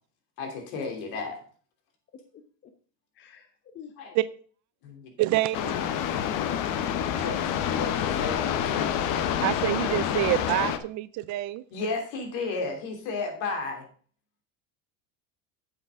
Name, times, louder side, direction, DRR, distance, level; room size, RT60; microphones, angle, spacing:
voice 1, 0.4-1.4 4.0-4.1 4.8-5.1 6.8-8.9 11.7-13.8, left 4 dB, 70° left, 4 dB, 3.2 m, -33 dB
voice 2, 2.3-2.7 3.2-4.2, left 8 dB, 30° left, 8 dB, 0.8 m, -49 dB
voice 3, 5.2-5.6 6.8-7.1 9.4-11.6, right 16 dB, 45° right, 16 dB, 0.5 m, -27 dB
sound 1, 5.5-10.8, left 9 dB, 50° left, 1.0 m, -27 dB
9.6 x 7.6 x 3.7 m, 0.44 s
cardioid pair, 140°, 40 cm